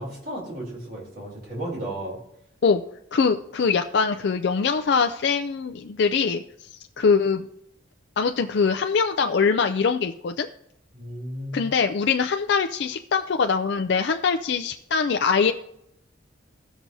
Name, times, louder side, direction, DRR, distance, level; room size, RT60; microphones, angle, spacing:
voice 1, 0.0-2.2 10.9-11.7, right 1 dB, 45° right, -4 dB, 3.4 m, -34 dB
voice 2, 3.1-6.7 7.0-7.4 8.2-10.5 11.5-15.5, left 5 dB, 60° left, 6 dB, 0.4 m, -23 dB
16.5 x 6.0 x 2.7 m, 0.76 s
head